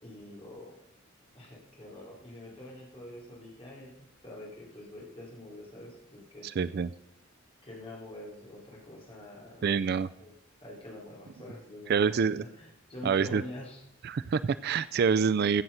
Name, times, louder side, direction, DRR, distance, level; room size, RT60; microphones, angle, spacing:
voice 1, 0.0-0.8 1.3-4.0 4.2-6.5 7.6-9.7 10.2-10.3 10.6-13.8, left 1 dB, 30° left, -3 dB, 3.8 m, -46 dB
voice 2, 6.4-6.9 9.6-10.1 11.9-12.4 13.0-13.4 14.0-15.6, right 6 dB, 50° right, 17 dB, 0.3 m, -26 dB
16.0 x 7.6 x 5.6 m, 0.84 s
head